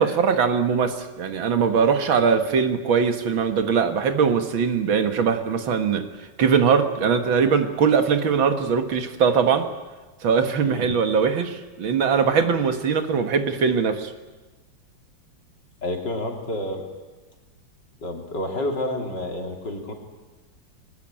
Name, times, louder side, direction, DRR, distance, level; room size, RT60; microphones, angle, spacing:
voice 1, 0.0-6.0 6.4-9.7 10.2-14.1, right 6 dB, 80° right, 8 dB, 2.4 m, -21 dB
voice 2, 10.6-11.0 15.8-16.8 18.0-19.9, left 1 dB, 60° left, 2 dB, 3.7 m, -29 dB
22.5 x 20.0 x 8.9 m, 1.2 s
omnidirectional pair, 2.1 m